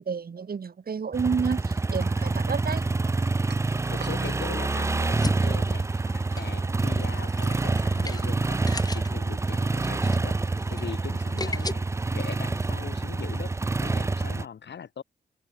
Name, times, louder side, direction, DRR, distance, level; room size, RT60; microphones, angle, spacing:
voice 1, 0.0-2.8, right 6 dB, 60° right, 5.2 m, -30 dB
sound 1, 1.1-14.5, right 3 dB, 15° right, 0.4 m, -27 dB
sound 2, 2.0-4.4, right 7 dB, 75° right, 6.1 m, -47 dB
voice 2, 3.9-10.4 10.7-15.0, left 7 dB, 80° left, 3.5 m, -41 dB
sound 3, 5.1-11.7, left 3 dB, 20° left, 1.6 m, -38 dB
open air
wide cardioid pair, 115°, 18 cm